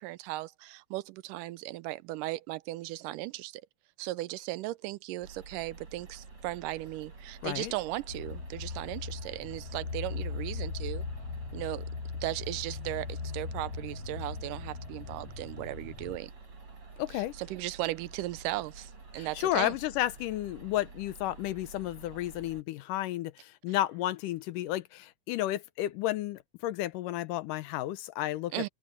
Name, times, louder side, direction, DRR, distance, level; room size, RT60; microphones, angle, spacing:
voice 1, 0.0-3.6 4.0-11.1 11.5-11.9 12.2-16.3 17.1-19.7 28.5-28.7, right 17 dB, 85° right, 2.2 m, -37 dB
sound 1, 5.2-22.6, right 4 dB, 50° right, 6.1 m, -50 dB
voice 2, 7.4-7.7 17.0-17.3 19.2-28.7, left 15 dB, 80° left, 2.4 m, -32 dB
sound 2, 8.1-16.2, left 4 dB, 60° left, 5.5 m, -39 dB
open air
omnidirectional pair, 3.8 m